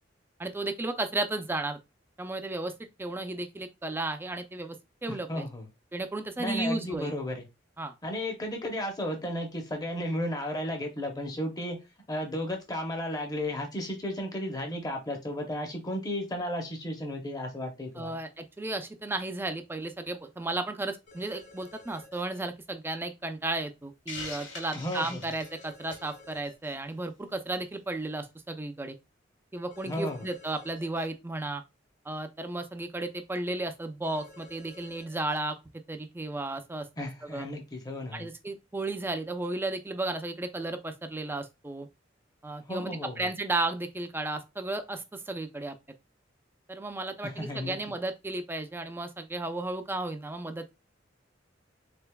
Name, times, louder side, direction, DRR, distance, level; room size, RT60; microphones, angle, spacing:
voice 1, 0.4-1.8 2.2-2.7 3.0-4.8 5.0-5.5 5.9-7.1 7.8-7.9 18.0-29.0 29.5-31.6 32.1-35.6 35.9-36.9 37.2-37.5 38.1-41.9 42.4-45.8 46.7-50.7, right 2 dB, 10° right, 0.4 m, -34 dB
voice 2, 5.1-5.7 6.4-7.5 8.0-11.8 12.1-18.2 24.7-25.2 29.8-30.3 37.0-38.3 42.6-43.3 47.2-47.8, left 1 dB, 20° left, 0.7 m, -34 dB
sound 1, 21.1-22.4 25.4-26.7 29.7-31.1 34.0-35.4, left 2 dB, 70° left, 1.7 m, -52 dB
Hiss, 24.1-26.1, left 3 dB, 85° left, 1.5 m, -41 dB
3.7 x 3.4 x 2.2 m
head